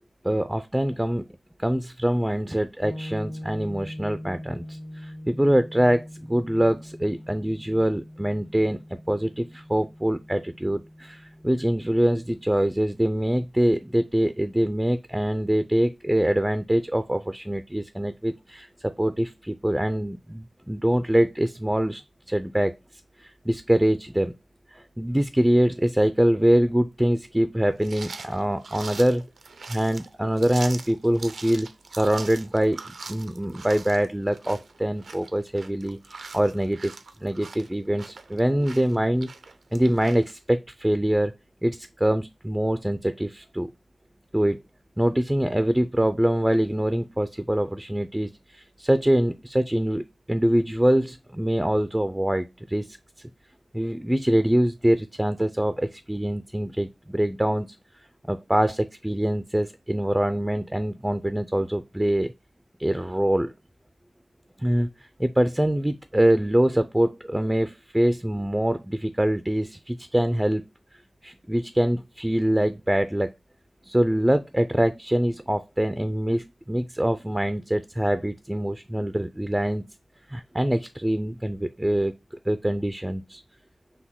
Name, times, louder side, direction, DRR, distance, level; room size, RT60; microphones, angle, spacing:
voice 1, 0.2-1.3 1.6-22.0 22.3-22.8 23.2-24.3 24.7-29.2 29.7-31.7 32.0-36.0 36.3-36.9 37.2-39.3 39.7-41.3 41.6-43.7 44.3-44.6 45.0-52.9 53.7-57.8 58.3-62.3 62.8-63.5 64.6-64.9 65.2-70.6 71.2-73.3 73.9-79.8 80.3-82.1 82.5-83.4, right 1 dB, 10° right, 0.4 m, -24 dB
sound 1, 2.8-12.5, equal, 40° left, 0.8 m, -41 dB
sound 2, 27.8-40.3, right 4 dB, 75° right, 0.5 m, -42 dB
5.9 x 2.2 x 3.6 m
wide cardioid pair, 95°, 0 cm